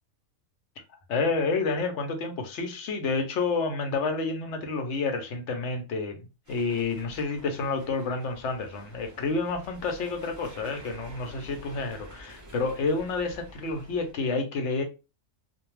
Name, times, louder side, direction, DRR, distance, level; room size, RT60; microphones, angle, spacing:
voice 1, 1.1-14.8, left 4 dB, 70° left, 0.9 m, -29 dB
sound 1, 6.4-14.1, right 1 dB, 20° right, 0.5 m, -49 dB
2.6 x 2.2 x 3.1 m
omnidirectional pair, 1.3 m